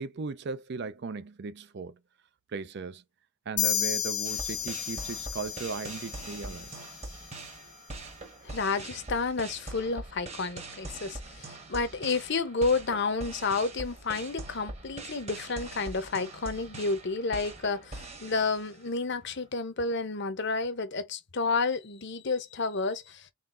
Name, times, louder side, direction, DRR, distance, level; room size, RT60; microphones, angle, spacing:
voice 1, 0.0-2.0 2.5-3.0 3.5-6.7, right 4 dB, 50° right, 0.4 m, -37 dB
sound 1, 3.6-7.2, left 10 dB, 75° left, 0.9 m, -33 dB
sound 2, 4.2-19.0, right 2 dB, 30° right, 1.2 m, -43 dB
voice 2, 8.4-23.3, left 4 dB, 55° left, 0.7 m, -30 dB
3.9 x 3.8 x 2.5 m
head